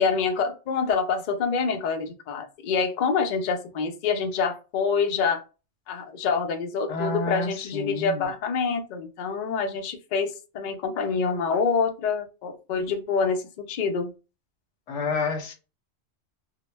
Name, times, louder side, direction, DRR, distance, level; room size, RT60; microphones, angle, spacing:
voice 1, 0.0-5.4 5.9-14.1, left 5 dB, 60° left, 0.5 m, -26 dB
voice 2, 6.9-8.3 14.9-15.5, left 3 dB, 80° left, 1.0 m, -29 dB
2.1 x 2.0 x 3.1 m
omnidirectional pair, 1.2 m